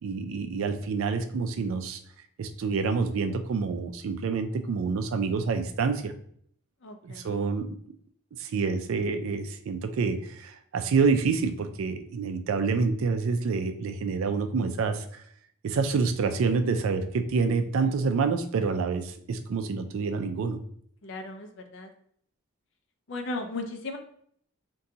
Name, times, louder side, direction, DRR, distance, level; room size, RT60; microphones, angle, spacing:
voice 1, 0.0-2.0 2.4-6.1 7.0-7.8 8.4-15.0 15.6-20.6, right 4 dB, 75° right, 8 dB, 0.3 m, -27 dB
voice 2, 6.8-7.4 17.8-17.9 21.0-21.9 23.1-24.0, left 2 dB, 60° left, 5 dB, 0.4 m, -36 dB
3.8 x 2.2 x 2.7 m, 0.64 s
head